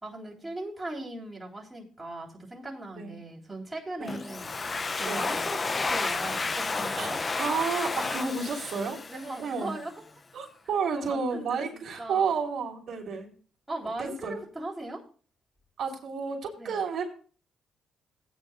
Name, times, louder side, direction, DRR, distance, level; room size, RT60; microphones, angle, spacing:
voice 1, 0.0-4.5 4.9-5.4 5.9-7.3 9.1-9.9 10.9-12.3 13.7-15.0 16.6-16.8, right 2 dB, 10° right, -3 dB, 3.5 m, -38 dB
Domestic sounds home sounds, 4.1-9.7, left 3 dB, 30° left, 0.4 m, -31 dB
voice 2, 7.0-9.0 9.4-9.7 10.3-13.3 14.0-14.4 15.8-17.0, right 5 dB, 65° right, 0 dB, 3.2 m, -31 dB
17.0 x 9.4 x 2.4 m, 0.40 s
cardioid pair, 90°, 0 cm